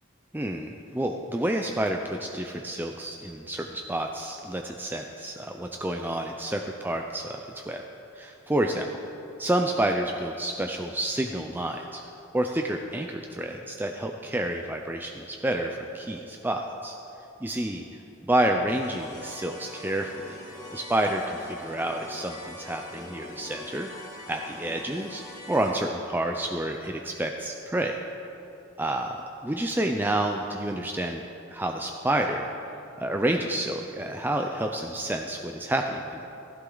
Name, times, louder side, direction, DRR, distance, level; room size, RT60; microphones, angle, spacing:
voice 1, 0.3-7.8 8.2-8.9 9.4-12.0 12.3-16.9 17.4-17.8 18.3-20.4 20.7-23.9 24.3-25.2 25.5-28.0 28.8-31.2 31.5-32.5 33.0-36.3, right 1 dB, 10° right, 3 dB, 0.5 m, -29 dB
sound 1, 18.7-25.7, left 1 dB, 20° left, 1.7 m, -43 dB
16.0 x 14.5 x 4.0 m, 2.8 s
head